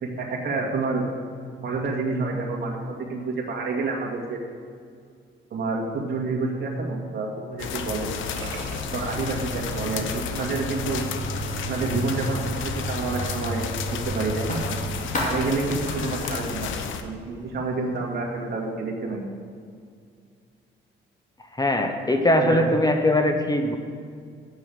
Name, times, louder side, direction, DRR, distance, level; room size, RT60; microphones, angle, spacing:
voice 1, 0.0-1.0 1.6-4.4 5.5-8.1 8.9-11.0 11.7-14.6 15.2-16.7 17.0-19.3 22.4-22.7, right 3 dB, 55° right, -1 dB, 2.1 m, -28 dB
sound 1, 7.6-17.0, left 6 dB, 80° left, 0.8 m, -32 dB
Writing, 8.4-16.3, left 1 dB, 40° left, 2.8 m, -37 dB
sound 2, 8.4-17.1, right 3 dB, 90° right, 1.7 m, -37 dB
voice 2, 21.6-23.8, left 1 dB, 20° left, 5 dB, 0.9 m, -21 dB
8.4 x 6.2 x 7.7 m, 2.2 s
cardioid pair, 90°, 20 cm